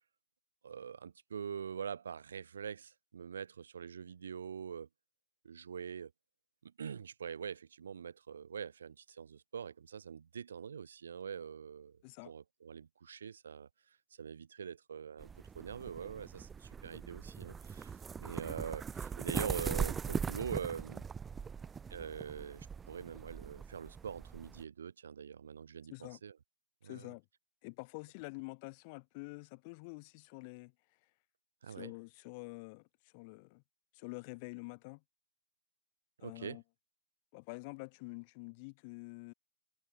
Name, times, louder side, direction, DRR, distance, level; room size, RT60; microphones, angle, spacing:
voice 1, 0.6-4.9 5.4-6.1 6.6-12.0 12.2-13.7 14.2-15.3 15.5-17.9 18.2-21.0 21.9-26.3 26.8-27.1 31.6-31.9 36.2-36.6, right 7 dB, 70° right, 1.5 m, -44 dB
voice 2, 12.0-12.3 25.9-26.2 26.8-27.3 27.6-30.7 31.7-33.6 33.9-35.0 36.2-36.6 37.3-39.3, left 29 dB, 25° left, 1.8 m, -47 dB
sound 1, 15.2-24.6, right 6 dB, 10° right, 1.2 m, -41 dB
hypercardioid pair, 170°, 0 cm